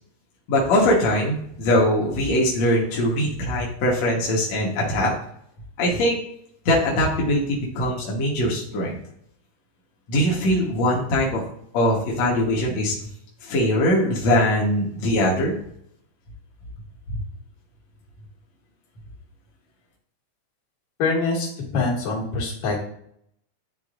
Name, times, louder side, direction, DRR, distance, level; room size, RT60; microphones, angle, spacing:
voice 1, 0.5-5.1 5.8-6.2 6.7-9.0 10.1-11.4 11.7-12.9 13.4-15.6 17.1-17.2, left 1 dB, 65° left, -4 dB, 2.4 m, -21 dB
voice 2, 21.0-21.5 21.7-22.8, left 3 dB, 80° left, -4 dB, 3.2 m, -24 dB
11.0 x 3.8 x 2.5 m, 0.68 s
omnidirectional pair, 3.4 m